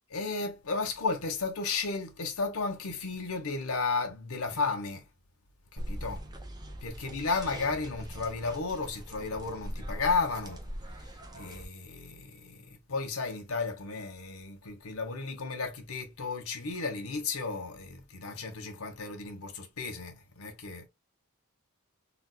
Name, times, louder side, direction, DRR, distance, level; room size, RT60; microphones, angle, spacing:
voice 1, 0.1-5.0 5.7-6.2 6.8-10.6 11.3-20.9, left 4 dB, 75° left, 0.9 m, -33 dB
sound 1, 5.8-11.7, equal, 20° right, 0.6 m, -41 dB
4.0 x 2.5 x 2.2 m
head